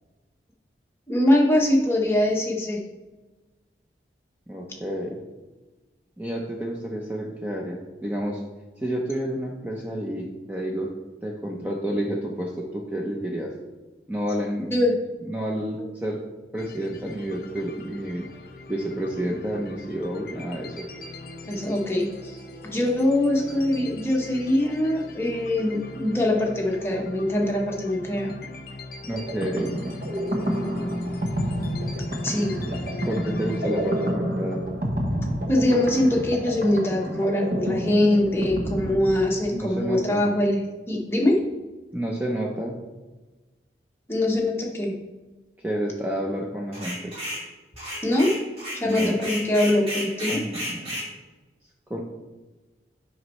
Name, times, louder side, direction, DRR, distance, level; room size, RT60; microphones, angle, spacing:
voice 1, 1.1-2.8 14.7-14.9 21.5-22.4 22.7-28.4 32.2-32.6 35.5-41.4 44.1-44.9 48.0-48.3 48.7-50.4, left 1 dB, 15° left, -1 dB, 0.9 m, -23 dB
voice 2, 4.5-5.2 6.2-8.4 8.8-10.9 11.2-13.5 14.1-14.7 15.2-16.2 16.5-18.2 18.7-20.9 28.2-28.5 29.1-29.7 32.6-32.8 33.1-34.6 39.5-40.3 41.9-42.8 45.6-47.1 48.8-49.2 50.3-50.9 51.9-52.0, equal, 10° right, -2 dB, 0.6 m, -30 dB
sound 1, 16.6-34.1, left 2 dB, 55° left, 0.6 m, -40 dB
sound 2, 29.1-39.7, equal, 50° right, 1.0 m, -29 dB
sound 3, 46.7-47.5 47.8-51.1, equal, 35° right, 2.0 m, -32 dB
9.2 x 5.3 x 3.1 m, 1.2 s
head